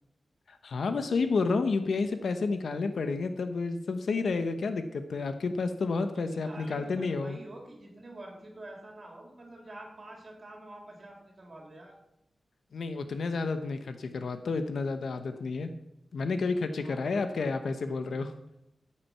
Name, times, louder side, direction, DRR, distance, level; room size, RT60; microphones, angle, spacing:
voice 1, 0.5-7.4 12.7-15.7 16.1-18.3, left 4 dB, 90° left, 8 dB, 1.0 m, -30 dB
voice 2, 6.1-12.0 16.8-17.5, right 1 dB, 40° right, 0 dB, 3.7 m, -47 dB
13.5 x 8.6 x 5.7 m, 0.85 s
wide cardioid pair, 140°, 0 cm